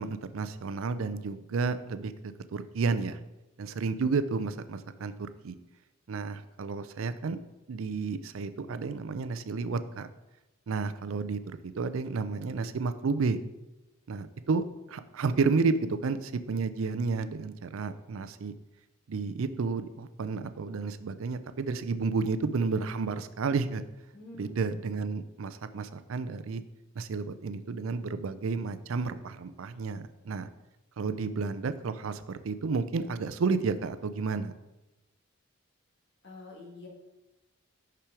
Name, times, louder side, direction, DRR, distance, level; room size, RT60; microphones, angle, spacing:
voice 1, 0.0-2.1 2.5-3.2 3.6-5.1 5.4-5.6 6.1-7.4 7.7-10.1 10.7-11.4 11.8-13.4 14.1-18.5 19.1-23.8 24.4-26.6 26.9-30.5 31.0-34.5, right 4 dB, 70° right, 12 dB, 0.4 m, -31 dB
voice 2, 24.1-24.5 36.2-36.9, left 2 dB, 55° left, -1 dB, 1.9 m, -46 dB
6.0 x 5.9 x 4.9 m, 1.0 s
head